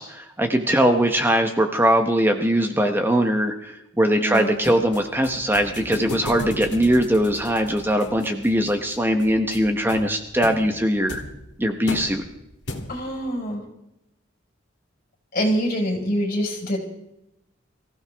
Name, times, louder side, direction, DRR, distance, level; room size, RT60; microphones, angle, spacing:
voice 1, 0.0-11.2 11.6-12.2, equal, 10° right, 5 dB, 1.0 m, -21 dB
voice 2, 4.2-4.6 12.9-13.6 15.3-16.8, equal, 50° left, 0 dB, 4.9 m, -25 dB
sound 1, 4.3-13.2, left 1 dB, 65° left, 2.1 m, -37 dB
24.0 x 15.5 x 3.5 m, 0.85 s
head